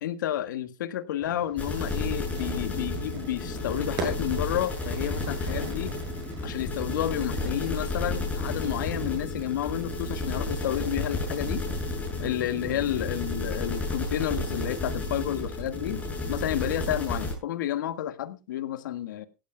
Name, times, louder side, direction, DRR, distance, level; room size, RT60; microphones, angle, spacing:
voice 1, 0.0-6.0 6.4-11.6 12.2-16.0 16.3-19.3, left 12 dB, 75° left, 1.7 m, -31 dB
Fire / Fireworks, 1.2-6.8, right 5 dB, 35° right, 7.3 m, -41 dB
sound 1, 1.6-17.3, left 2 dB, 15° left, 7.8 m, -32 dB
17.0 x 14.5 x 2.3 m
supercardioid pair, 140°, 10 cm